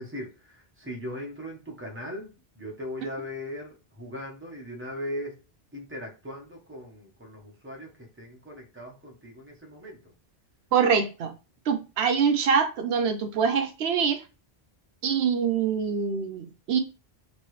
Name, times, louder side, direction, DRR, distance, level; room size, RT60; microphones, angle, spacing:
voice 1, 0.0-5.4 5.7-10.1, left 1 dB, 15° right, 0.9 m, -39 dB
voice 2, 10.7-11.3 11.7-14.2 15.0-16.8, right 6 dB, 75° right, 0.8 m, -24 dB
3.0 x 3.0 x 3.1 m
omnidirectional pair, 1.1 m